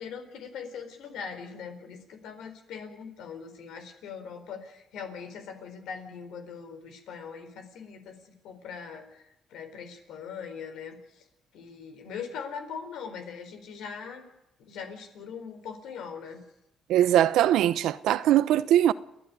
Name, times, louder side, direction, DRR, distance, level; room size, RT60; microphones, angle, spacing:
voice 1, 0.0-9.2 9.5-11.2 11.5-14.2 14.6-16.4, left 6 dB, 85° left, 4.2 m, -41 dB
voice 2, 16.9-18.9, right 12 dB, 85° right, 0.8 m, -21 dB
30.0 x 10.5 x 9.5 m
cardioid pair, 90°, 0 cm